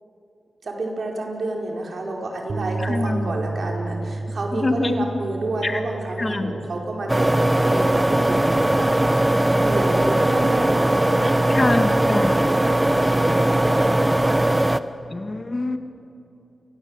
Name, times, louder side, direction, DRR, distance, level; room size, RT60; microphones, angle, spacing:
voice 1, 0.6-9.2 9.5-14.1, right 2 dB, 70° right, 1 dB, 4.8 m, -30 dB
sound 1, 2.5-8.8, right 2 dB, 50° right, 1.6 m, -32 dB
voice 2, 2.8-3.3 4.5-5.1 5.6-5.8 6.2-6.5 11.5-12.4 15.1-15.8, left 2 dB, 40° left, 7 dB, 2.1 m, -24 dB
sound 2, 7.1-14.8, right 1 dB, 20° right, 1.0 m, -19 dB
28.5 x 22.0 x 8.3 m, 2.7 s
cardioid pair, 50°, 0 cm